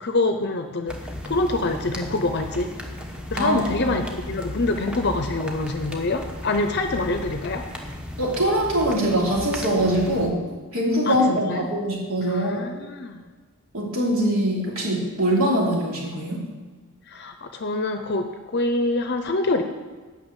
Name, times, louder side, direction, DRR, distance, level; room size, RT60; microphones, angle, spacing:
voice 1, 0.0-1.0 1.2-2.7 3.3-7.7 11.1-11.7 12.2-13.3 17.1-18.3 18.5-19.6, left 2 dB, 50° left, 6 dB, 0.6 m, -25 dB
sound 1, 0.9-10.3, left 1 dB, 5° right, 1.0 m, -35 dB
voice 2, 3.4-4.0 8.2-10.4 10.7-12.6 13.7-16.4, right 1 dB, 65° right, -3 dB, 3.0 m, -23 dB
9.3 x 6.1 x 8.1 m, 1.4 s
head